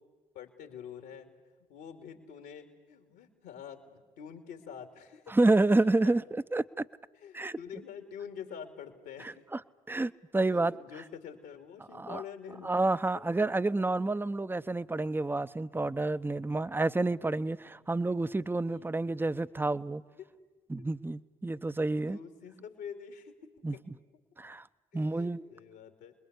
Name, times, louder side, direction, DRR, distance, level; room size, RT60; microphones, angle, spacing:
voice 1, 0.3-1.3 1.7-5.3 5.8-6.1 7.1-9.4 10.5-12.7 17.8-17.9 18.7-18.9 19.8-19.9 20.2-20.3 20.8-20.9 21.9-23.8 24.9-26.1, left 7 dB, 75° left, 6 dB, 2.7 m, -46 dB
voice 2, 5.3-6.8 7.3-7.6 9.2-9.6 9.9-10.7 11.9-12.2 12.6-20.0 20.7-22.2 23.6-23.8 24.4-24.7 24.9-25.4, right 2 dB, 10° right, 15 dB, 0.7 m, -29 dB
29.5 x 21.0 x 8.2 m, 1.2 s
hypercardioid pair, 45°, 17 cm